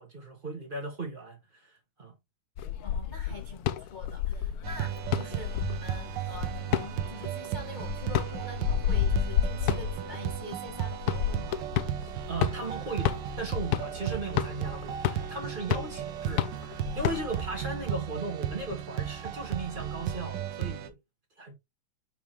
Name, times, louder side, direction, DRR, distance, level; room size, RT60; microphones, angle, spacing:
voice 1, 0.0-2.1 12.3-21.0 21.4-21.5, right 2 dB, 25° right, 1.7 m, -37 dB
sound 1, 2.6-17.5, left 11 dB, 75° left, 0.9 m, -31 dB
voice 2, 2.8-11.7 17.0-17.5, left 3 dB, 35° left, 0.8 m, -45 dB
sound 2, 4.6-20.9, right 11 dB, 70° right, 1.4 m, -35 dB
5.8 x 5.3 x 3.0 m
omnidirectional pair, 2.2 m